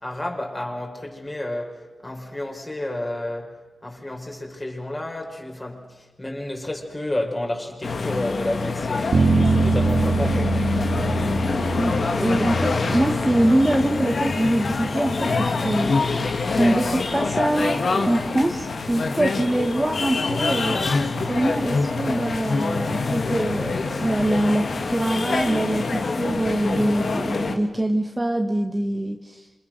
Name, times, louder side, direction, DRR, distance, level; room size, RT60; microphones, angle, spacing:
voice 1, 0.0-10.6, left 1 dB, 20° left, 5.4 m, -31 dB
sound 1, 7.8-27.6, left 3 dB, 60° left, 2.4 m, -25 dB
sound 2, 9.1-13.2, right 3 dB, 65° right, 2.4 m, -23 dB
voice 2, 11.8-16.0 16.6-20.8 21.2-29.5, right 1 dB, 15° right, 1.6 m, -24 dB
28.0 x 27.5 x 6.6 m
wide cardioid pair, 90°, 0 cm